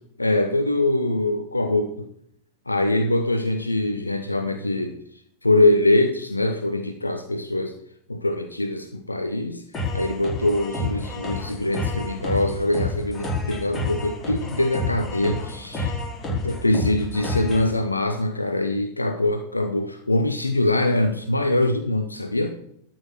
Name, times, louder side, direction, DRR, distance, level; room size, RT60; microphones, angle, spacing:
voice 1, 0.2-2.1 2.7-5.0 5.4-7.8 8.1-9.6 9.9-15.9 16.3-22.5, left 1 dB, 85° left, 7 dB, 0.9 m, -23 dB
sound 1, 9.7-17.7, left 2 dB, 20° left, 5.2 m, -29 dB
12.5 x 6.1 x 6.2 m, 0.70 s
figure-of-eight pair, 90°, 0 cm